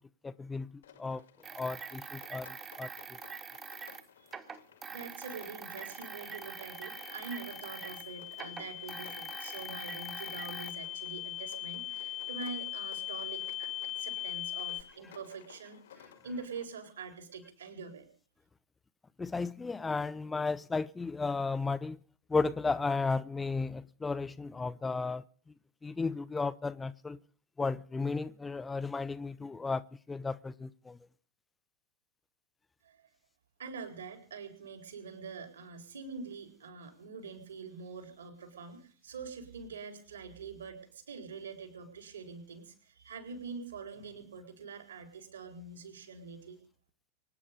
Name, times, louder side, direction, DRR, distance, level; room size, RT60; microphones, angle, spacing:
voice 1, 0.2-0.7 1.0-1.2 1.6-2.9 19.2-22.0 22.3-25.2 25.8-27.2 27.6-29.8 30.1-31.0, left 4 dB, 10° left, 0.6 m, -34 dB
Rain, 0.8-16.6, left 9 dB, 60° left, 1.9 m, -57 dB
sound 1, 1.4-8.1 8.3-10.7, right 6 dB, 20° right, 1.4 m, -45 dB
voice 2, 4.9-18.1 32.8-33.1 33.6-46.6, right 4 dB, 65° right, 4.2 m, -45 dB
sound 2, 5.9-14.8, left 14 dB, 30° left, 1.1 m, -41 dB
24.5 x 9.8 x 5.3 m
figure-of-eight pair, 90°, 0 cm